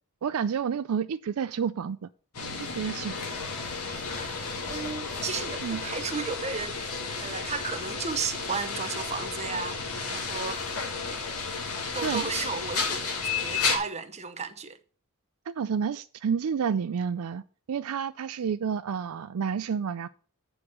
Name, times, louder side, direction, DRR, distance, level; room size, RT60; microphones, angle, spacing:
voice 1, 0.2-2.1 2.6-3.2 5.6-5.8 12.0-12.2 15.5-17.4 17.7-20.1, right 7 dB, 75° right, 0.4 m, -29 dB
sound 1, 2.3-13.8, left 5 dB, 85° left, 1.9 m, -32 dB
voice 2, 4.7-6.8 7.2-10.7 11.1-11.3 11.9-13.0 13.4-14.8, right 5 dB, 30° right, 0.9 m, -34 dB
8.0 x 4.7 x 7.2 m
head